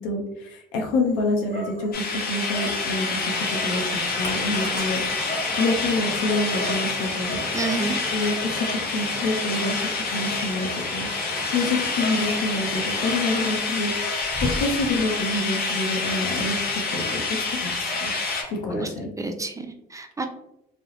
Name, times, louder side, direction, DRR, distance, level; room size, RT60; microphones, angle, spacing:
voice 1, 0.0-7.4 8.1-8.7 8.9-9.8 10.1-13.9 14.6-18.1 18.5-19.1, left 2 dB, 90° left, 2 dB, 0.6 m, -27 dB
Dog, 0.8-18.5, equal, 35° left, 1.5 m, -38 dB
sound 1, 1.9-18.4, left 4 dB, 50° left, 0.7 m, -28 dB
sound 2, 3.2-13.6, equal, 15° left, 1.1 m, -37 dB
voice 2, 7.5-8.0 18.7-18.9 19.2-20.3, right 3 dB, 15° right, 6 dB, 0.3 m, -29 dB
2.4 x 2.0 x 2.9 m, 0.83 s
supercardioid pair, 65°, 20 cm